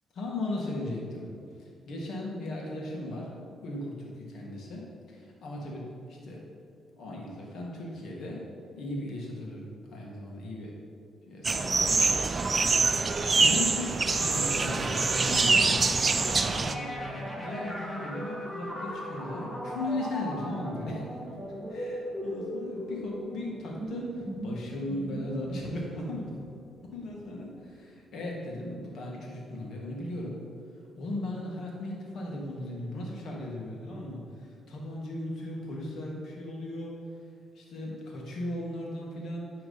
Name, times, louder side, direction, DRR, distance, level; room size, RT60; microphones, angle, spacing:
voice 1, 0.2-1.3 1.6-6.4 7.0-8.5 8.8-10.8 11.3-12.0 13.3-15.8 16.5-21.1 21.7-26.4 26.8-30.4 31.0-37.0 37.5-39.5, left 1 dB, 65° left, -2 dB, 2.0 m, -37 dB
sound 1, 11.4-16.8, right 4 dB, 30° right, 0.5 m, -25 dB
sound 2, 14.1-27.7, equal, 5° left, 1.6 m, -38 dB
10.0 x 3.9 x 5.5 m, 2.4 s
cardioid pair, 90°, 0 cm